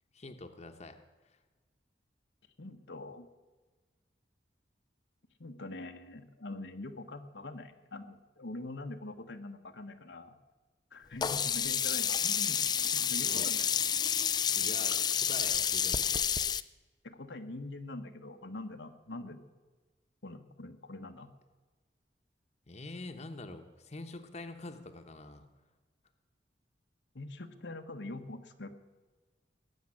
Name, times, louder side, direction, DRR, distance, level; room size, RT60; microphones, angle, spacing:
voice 1, 0.1-1.0 1.2-1.4 13.2-13.5 14.5-16.1 22.7-25.5, left 2 dB, 40° left, 6 dB, 1.1 m, -45 dB
voice 2, 2.6-3.3 5.4-10.4 10.9-12.6 12.9-13.8 17.0-19.4 20.2-21.3 27.1-28.7, left 2 dB, 85° left, 5 dB, 1.3 m, -44 dB
Sink (filling or washing), 11.2-16.6, left 8 dB, 25° left, 0.4 m, -29 dB
19.0 x 7.3 x 9.9 m, 1.3 s
head